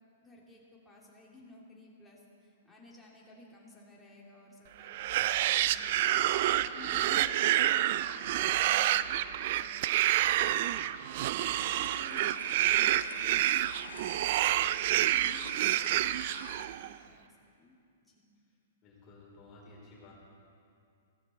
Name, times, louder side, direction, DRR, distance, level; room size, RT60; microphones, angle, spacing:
voice 1, 0.2-6.2 6.6-10.0 10.5-17.7 18.0-18.3, left 2 dB, 5° left, -5 dB, 2.9 m, -55 dB
sound 1, 4.9-16.9, right 13 dB, 50° right, 0.3 m, -28 dB
sound 2, 11.4-16.7, left 5 dB, 80° left, 0.8 m, -48 dB
voice 2, 18.8-20.1, left 2 dB, 35° left, -4 dB, 3.7 m, -54 dB
15.0 x 14.5 x 4.4 m, 2.4 s
hypercardioid pair, 115°, 0 cm